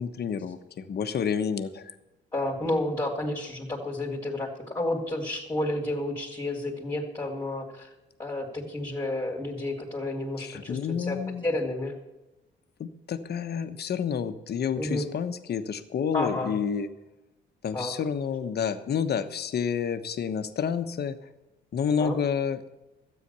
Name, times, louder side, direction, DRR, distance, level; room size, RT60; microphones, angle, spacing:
voice 1, 0.0-1.9 10.4-11.4 12.8-16.9 17.6-21.2 21.7-22.7, left 7 dB, 55° left, 10 dB, 1.2 m, -29 dB
voice 2, 2.3-7.9 8.2-11.2 11.4-11.9 14.7-15.1 16.1-16.5 17.7-17.9 22.0-22.1, left 1 dB, 15° left, -4 dB, 2.8 m, -31 dB
13.0 x 9.2 x 6.9 m, 1.0 s
cardioid pair, 90°, 20 cm